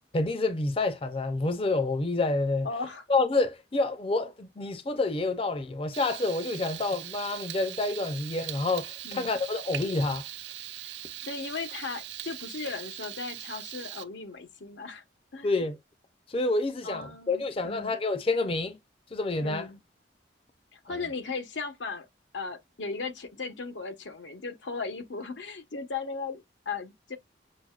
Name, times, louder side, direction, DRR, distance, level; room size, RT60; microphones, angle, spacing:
voice 1, 0.1-2.7 3.1-10.3 15.4-15.8 16.3-18.8 19.1-19.7, left 2 dB, 30° left, 0.5 m, -28 dB
voice 2, 2.6-3.0 9.0-9.3 11.2-15.0 15.3-15.5 16.8-18.0 19.4-19.8 20.7-22.1 22.3-27.2, left 4 dB, 85° left, 0.9 m, -37 dB
Frying (food), 5.9-14.0, right 13 dB, 70° right, 0.5 m, -41 dB
6.1 x 2.1 x 2.3 m
head